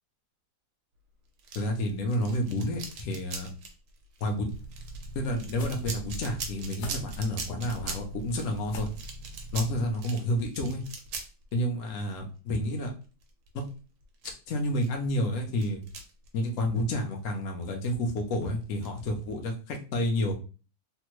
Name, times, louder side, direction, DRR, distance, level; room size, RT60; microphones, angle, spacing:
sound 1, 1.4-17.2 17.6-19.5, right 4 dB, 70° right, 1.1 m, -42 dB
voice 1, 1.5-3.5 4.2-4.5 5.1-8.9 9.5-10.8 11.5-12.9 13.5-13.6 14.5-15.8 16.3-20.3, left 1 dB, 60° left, 2 dB, 0.9 m, -30 dB
sound 2, 4.5-9.9, right 1 dB, 85° left, 1.4 m, -42 dB
3.3 x 2.2 x 3.0 m, 0.35 s
omnidirectional pair, 2.0 m